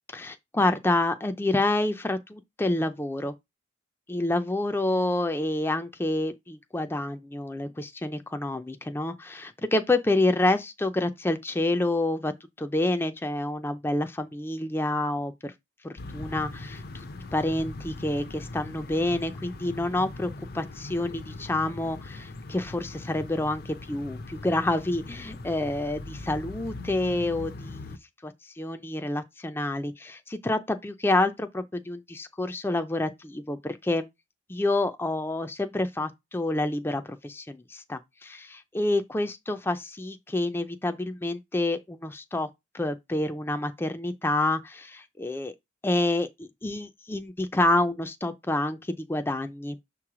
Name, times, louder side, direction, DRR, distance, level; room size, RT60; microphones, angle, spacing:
voice 1, 0.1-3.3 4.1-12.3 12.6-15.5 15.8-17.1 17.3-28.0 28.2-34.0 34.5-42.5 42.7-45.5 45.8-49.8, left 2 dB, 15° left, 0.4 m, -28 dB
sound 1, 16.0-28.0, left 2 dB, 55° left, 0.6 m, -40 dB
6.6 x 3.1 x 4.8 m
head